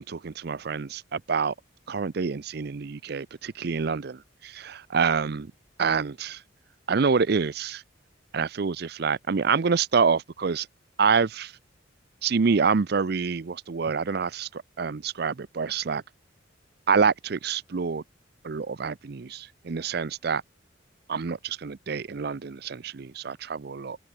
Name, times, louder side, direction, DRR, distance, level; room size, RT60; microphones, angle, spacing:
voice 1, 0.0-1.5 1.9-5.5 5.8-6.4 6.9-7.8 8.3-10.7 11.0-11.5 12.2-16.0 16.9-18.0 18.4-20.4 21.1-24.0, right 5 dB, 55° right, 0.5 m, -27 dB
open air
head